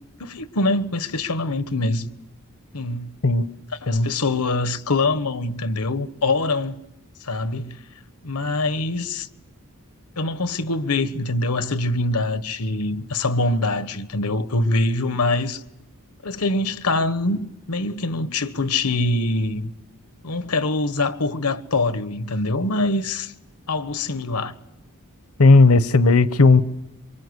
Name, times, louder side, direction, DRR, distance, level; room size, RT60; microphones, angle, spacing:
voice 1, 0.2-2.1 2.7-3.1 3.8-6.8 7.2-7.8 8.2-9.3 10.2-15.6 16.2-19.7 20.2-23.3 23.7-24.5, left 2 dB, 90° left, 1.2 m, -24 dB
voice 2, 25.4-26.6, left 3 dB, 70° left, 0.9 m, -14 dB
27.0 x 24.0 x 8.1 m
head